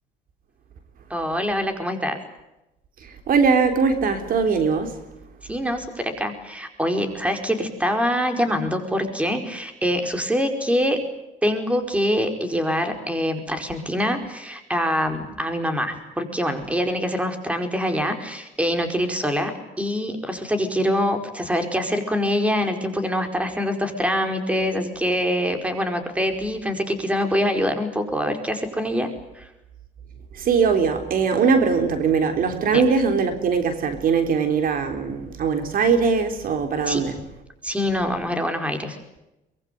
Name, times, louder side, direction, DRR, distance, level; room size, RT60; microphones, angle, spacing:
voice 1, 1.1-2.2 5.5-11.0 11.4-29.1 29.3-29.5 32.7-32.8 36.9-37.0 37.6-39.0, equal, 5° right, 6 dB, 4.8 m, -24 dB
voice 2, 3.0-5.0 30.3-37.2, right 5 dB, 55° right, 7 dB, 3.6 m, -21 dB
24.0 x 22.0 x 9.3 m, 0.93 s
cardioid pair, 110°, 17 cm